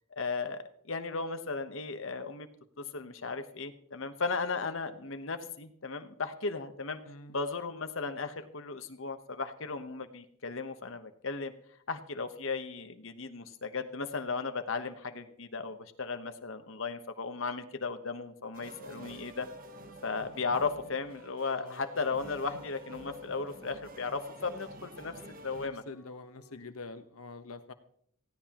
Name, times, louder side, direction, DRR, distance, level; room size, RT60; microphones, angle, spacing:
voice 1, 0.2-0.6 0.9-2.5 2.8-7.0 7.3-11.5 11.9-19.5 20.0-25.8, left 4 dB, 65° left, 9 dB, 1.1 m, -36 dB
voice 2, 7.0-7.4 21.5-21.8 25.6-27.7, left 3 dB, 90° left, 10 dB, 1.2 m, -45 dB
sound 1, 18.5-25.7, right 2 dB, 40° right, 1.2 m, -50 dB
sound 2, 19.5-25.1 25.9-26.6, left 6 dB, ahead, 7.1 m, -54 dB
19.0 x 16.0 x 3.0 m, 0.66 s
head